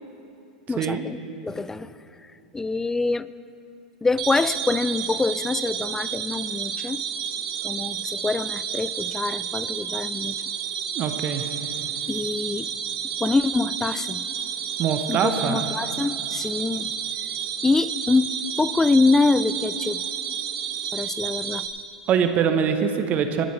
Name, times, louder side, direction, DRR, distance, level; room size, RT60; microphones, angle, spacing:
voice 1, 0.7-1.2 1.4-1.9 2.5-3.3 4.0-7.0 7.6-10.4 12.1-12.7 13.2-14.3 15.1-16.9 17.6-18.3 18.6-20.0 20.9-21.7, left 3 dB, 10° left, 17 dB, 0.3 m, -25 dB
sound 1, 4.2-21.7, right 8 dB, 70° right, 1.3 m, -30 dB
voice 2, 10.9-11.5 14.8-15.7 22.1-23.4, right 7 dB, 40° right, 7 dB, 0.9 m, -23 dB
20.0 x 13.5 x 3.2 m, 2.9 s
hypercardioid pair, 95°, 4 cm